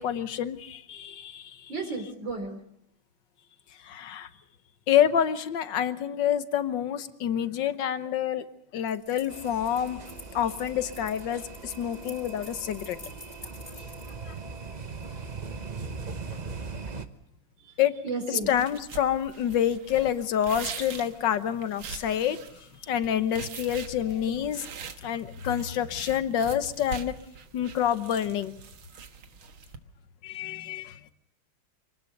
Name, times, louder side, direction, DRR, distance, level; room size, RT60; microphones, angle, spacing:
voice 1, 0.0-1.7 3.8-4.3 4.9-8.4 8.7-10.0 10.3-13.0 17.8-17.9 18.3-22.4 22.9-24.6 25.0-27.2 27.5-28.5 30.2-31.0, left 10 dB, 65° left, 11 dB, 1.7 m, -27 dB
voice 2, 1.7-2.6 18.0-18.5, right 3 dB, 65° right, 4 dB, 4.4 m, -32 dB
sound 1, 8.9-15.1, left 2 dB, 20° left, 3.0 m, -48 dB
sound 2, 9.3-17.1, right 4 dB, 30° right, 0.8 m, -40 dB
sound 3, 18.5-29.8, right 6 dB, 90° right, 2.2 m, -43 dB
25.5 x 19.0 x 6.6 m, 0.73 s
omnidirectional pair, 2.2 m